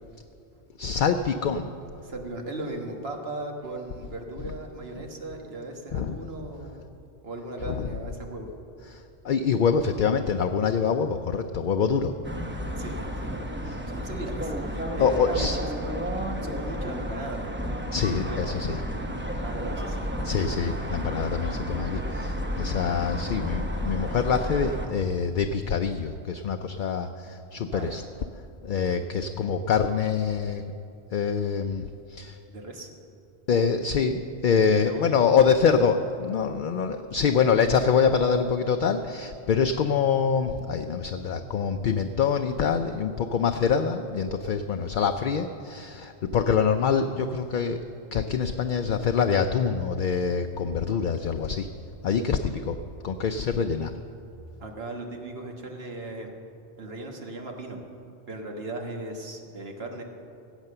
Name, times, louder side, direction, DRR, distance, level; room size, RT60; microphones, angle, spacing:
voice 1, 0.8-1.7 5.9-6.1 7.6-7.9 8.9-12.2 13.6-13.8 15.0-15.6 17.9-18.8 20.2-28.0 28.6-30.6 31.1-32.4 33.5-47.8 48.1-51.7 52.0-52.8 53.0-53.9, left 6 dB, 60° left, 6 dB, 0.6 m, -25 dB
voice 2, 2.0-6.8 7.2-8.5 12.8-12.9 13.2-13.4 13.9-15.9 16.4-17.5 18.1-18.5 19.4-20.0 27.7-28.0 32.5-32.9 34.8-35.2 37.1-37.2 54.6-56.3 56.8-57.8 58.3-60.0, right 2 dB, 70° right, 2 dB, 1.6 m, -37 dB
sound 1, 12.2-24.9, equal, 10° right, 0.8 m, -32 dB
16.5 x 8.2 x 6.7 m, 2.6 s
omnidirectional pair, 1.1 m